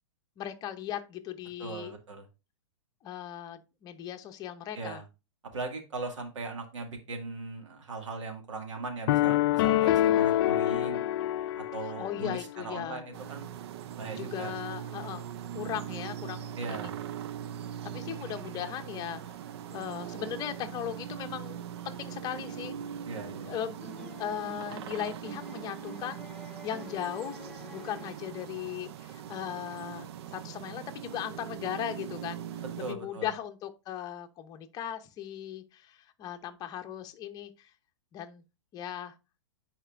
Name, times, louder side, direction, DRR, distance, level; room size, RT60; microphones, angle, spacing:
voice 1, 0.4-1.9 3.0-5.0 9.9-10.2 11.8-13.0 14.1-15.2 15.5-16.9 17.8-19.4 19.7-22.7 23.4-23.8 24.2-26.2 26.6-27.4 27.7-32.4 32.8-37.7 38.1-38.4 38.7-39.1, left 10 dB, 25° left, 0.8 m, -38 dB
voice 2, 1.6-2.3 4.7-5.0 5.5-11.0 11.7-13.5 14.0-14.5 16.6-17.0 23.0-23.5 32.8-33.3, right 3 dB, 80° right, 2.0 m, -39 dB
sound 1, 9.1-12.3, left 13 dB, 50° left, 0.4 m, -26 dB
sound 2, 13.1-32.9, right 9 dB, 60° right, 0.5 m, -41 dB
sound 3, 23.8-28.7, right 1 dB, 5° left, 1.4 m, -47 dB
9.9 x 4.3 x 2.5 m
hypercardioid pair, 130°, 16 cm